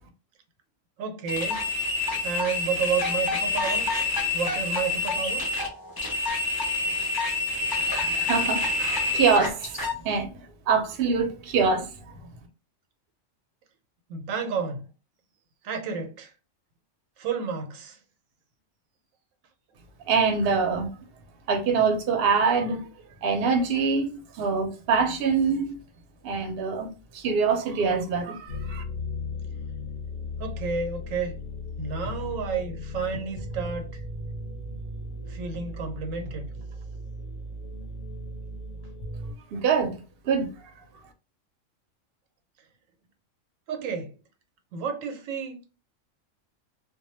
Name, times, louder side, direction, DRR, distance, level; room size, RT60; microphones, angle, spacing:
voice 1, 1.0-1.7 2.2-3.9 4.3-5.4 14.1-14.9 15.6-16.3 17.2-18.0 30.4-31.3 31.8-34.0 35.3-36.5 43.7-44.1 44.7-45.6, right 6 dB, 85° right, 1.0 m, -31 dB
sound 1, 1.3-10.0, left 3 dB, 40° left, 0.3 m, -27 dB
voice 2, 7.8-12.3 20.1-20.9 21.5-22.8 23.2-25.8 26.2-28.8 39.5-40.0 40.2-40.7, right 5 dB, 60° right, 0.7 m, -25 dB
sound 2, 28.5-39.3, left 2 dB, 55° left, 0.7 m, -36 dB
2.2 x 2.1 x 3.0 m
omnidirectional pair, 1.3 m